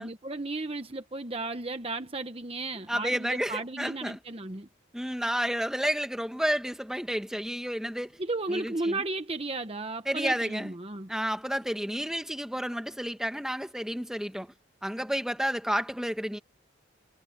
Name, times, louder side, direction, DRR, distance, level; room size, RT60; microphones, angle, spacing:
voice 1, 0.0-4.7 8.2-11.1, right 2 dB, 30° right, 0.9 m, -34 dB
voice 2, 2.9-4.2 4.9-8.2 8.5-9.0 10.0-10.7 11.1-14.5 14.8-16.4, equal, 5° right, 1.5 m, -31 dB
head